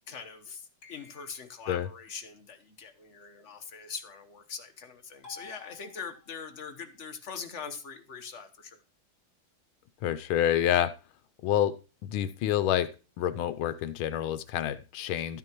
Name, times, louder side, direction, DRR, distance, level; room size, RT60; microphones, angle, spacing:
voice 1, 0.1-8.8, left 6 dB, 45° left, 8 dB, 1.0 m, -42 dB
sound 1, 0.8-1.7 5.2-6.5, left 4 dB, 30° left, 2.5 m, -52 dB
voice 2, 10.0-10.9 11.4-11.7 12.0-12.9 13.2-15.4, left 11 dB, 80° left, 13 dB, 1.4 m, -27 dB
12.5 x 9.4 x 3.0 m, 0.34 s
omnidirectional pair, 2.2 m